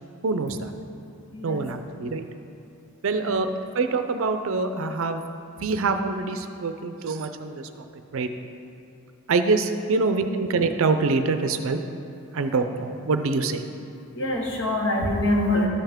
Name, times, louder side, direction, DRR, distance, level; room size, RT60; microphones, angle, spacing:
voice 1, 0.2-0.7 1.4-2.3 3.0-3.5 3.7-5.2 5.6-7.7 8.1-8.3 9.3-11.8 12.3-13.6, right 3 dB, 65° right, 8 dB, 0.5 m, -25 dB
voice 2, 1.3-1.7 14.1-15.7, left 1 dB, 55° left, -1 dB, 1.2 m, -24 dB
13.0 x 5.6 x 3.6 m, 2.7 s
head